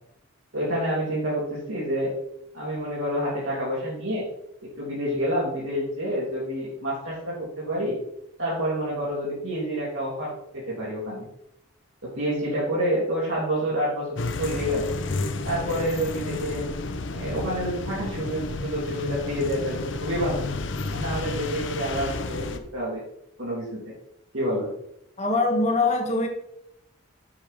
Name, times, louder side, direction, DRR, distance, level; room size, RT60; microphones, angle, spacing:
voice 1, 0.5-2.1 2.5-4.3 4.6-8.0 8.4-11.3 12.0-14.9 15.4-16.7 17.1-20.4 20.9-23.0 23.4-23.9 24.3-24.7, equal, 75° right, -8 dB, 2.5 m, -28 dB
sound 1, 14.1-22.6, left 3 dB, 65° left, 0.7 m, -31 dB
voice 2, 25.2-26.3, left 3 dB, 35° left, 2 dB, 1.4 m, -22 dB
7.5 x 3.6 x 6.3 m, 0.79 s
head